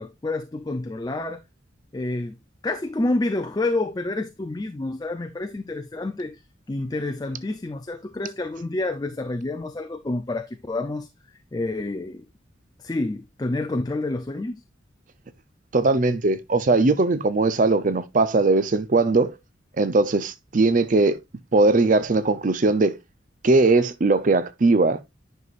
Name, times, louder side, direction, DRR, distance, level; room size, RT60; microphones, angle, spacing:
voice 1, 0.0-1.4 1.9-2.4 2.6-6.4 6.7-11.1 11.5-12.3 12.8-14.6, left 2 dB, 20° left, 0.4 m, -28 dB
voice 2, 15.7-19.4 19.8-21.2 21.5-23.0 23.4-25.1, right 3 dB, 40° right, 0.5 m, -20 dB
9.6 x 5.5 x 2.4 m
head